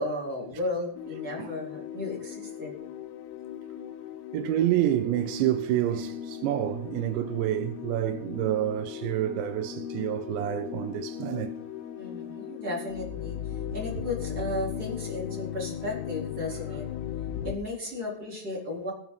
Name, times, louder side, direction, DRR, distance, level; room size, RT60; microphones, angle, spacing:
voice 1, 0.0-2.7 12.0-17.0 17.4-18.9, left 2 dB, 20° right, 3.9 m, -34 dB
sound 1, 1.0-17.6, left 10 dB, 80° left, 3.1 m, -37 dB
voice 2, 4.3-11.6, right 13 dB, 85° right, 2.5 m, -28 dB
19.5 x 8.6 x 4.1 m
omnidirectional pair, 5.7 m